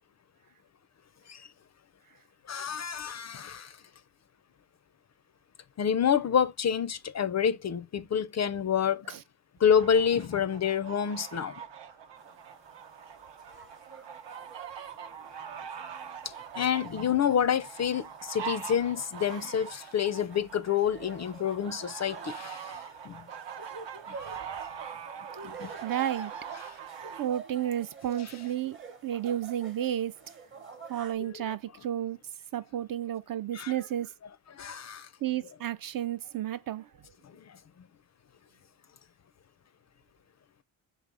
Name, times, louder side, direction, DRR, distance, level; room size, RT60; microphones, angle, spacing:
voice 1, 2.5-3.7 5.8-9.1 9.6-11.5 16.3-22.8 23.0-23.2 24.1-24.2 25.4-25.7 33.5-33.7 34.5-35.1 37.5-37.6, left 8 dB, 40° left, 0.4 m, -28 dB
sound 1, 9.8-27.3, right 7 dB, 75° right, 0.8 m, -43 dB
sound 2, 12.2-31.1, right 5 dB, 30° right, 0.9 m, -49 dB
voice 2, 25.8-26.3 27.2-30.1 30.9-32.2 32.5-34.1 35.2-36.9, right 11 dB, 50° right, 0.5 m, -32 dB
4.0 x 3.3 x 3.4 m
cardioid pair, 75°, 43 cm